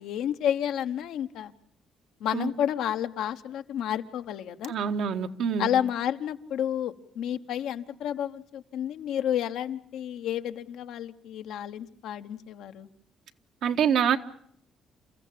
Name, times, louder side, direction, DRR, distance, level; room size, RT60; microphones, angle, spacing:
voice 1, 0.0-1.5 2.2-4.7 5.6-12.9, left 10 dB, 85° left, 8 dB, 1.2 m, -30 dB
voice 2, 4.7-5.7 13.6-14.2, right 7 dB, 75° right, 6 dB, 1.4 m, -25 dB
29.0 x 14.5 x 8.6 m, 0.65 s
cardioid pair, 110°, 0 cm